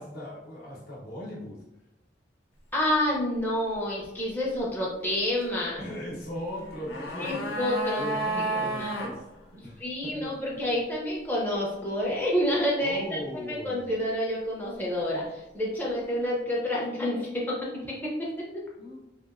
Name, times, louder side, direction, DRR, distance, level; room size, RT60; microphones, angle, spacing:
voice 1, 0.0-1.6 5.8-7.6 8.0-9.3 9.5-10.6 12.8-13.9 18.8-19.0, equal, 60° left, -3 dB, 0.9 m, -38 dB
voice 2, 2.7-5.8 7.2-8.0 8.4-9.0 9.8-18.6, left 1 dB, 10° left, -5 dB, 0.5 m, -29 dB
sound 1, 6.5-9.1 9.4-9.5, right 2 dB, 90° left, 0.6 m, -31 dB
2.8 x 2.7 x 2.4 m, 0.93 s
head